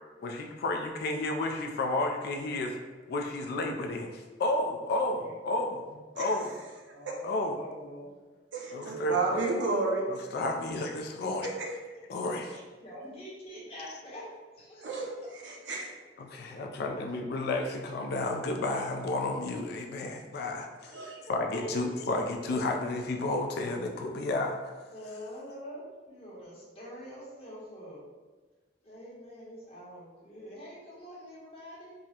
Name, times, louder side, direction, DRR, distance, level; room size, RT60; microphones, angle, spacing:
voice 1, 0.2-2.8 3.1-6.5 7.2-7.6 8.7-9.4 10.1-11.5 12.1-12.6 16.2-20.9 21.3-24.7, left 2 dB, 60° left, 3 dB, 0.3 m, -32 dB
voice 2, 6.9-8.1 12.5-14.3 14.6-15.1 20.9-21.7 24.9-28.0 28.8-31.9, equal, 35° left, -7 dB, 1.0 m, -45 dB
voice 3, 8.5-10.0 11.4-11.7 14.8-15.1 15.4-15.9 20.9-21.2, right 3 dB, 75° right, -1 dB, 0.6 m, -31 dB
3.6 x 2.0 x 2.8 m, 1.3 s
head